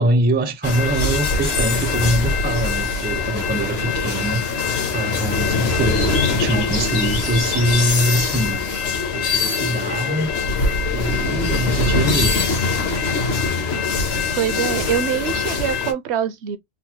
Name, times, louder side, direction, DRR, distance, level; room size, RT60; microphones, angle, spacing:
voice 1, 0.0-4.4 4.9-8.6 9.1-10.3 10.7-12.4, right 1 dB, 15° right, 0.3 m, -23 dB
sound 1, 0.6-15.9, left 4 dB, 65° left, 1.1 m, -22 dB
sound 2, 1.3-8.7, left 2 dB, 85° left, 1.3 m, -33 dB
voice 2, 14.3-16.6, right 10 dB, 75° right, 0.8 m, -24 dB
3.9 x 2.0 x 2.8 m
omnidirectional pair, 1.2 m